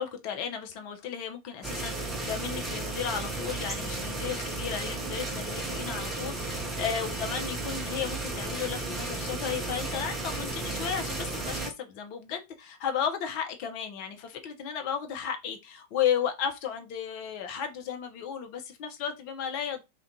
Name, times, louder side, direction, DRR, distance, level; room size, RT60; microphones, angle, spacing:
voice 1, 0.0-19.8, left 8 dB, 45° left, 0.6 m, -34 dB
sound 1, 1.6-11.7, right 2 dB, 15° right, 0.6 m, -34 dB
2.4 x 2.2 x 2.7 m
figure-of-eight pair, 90°, 0 cm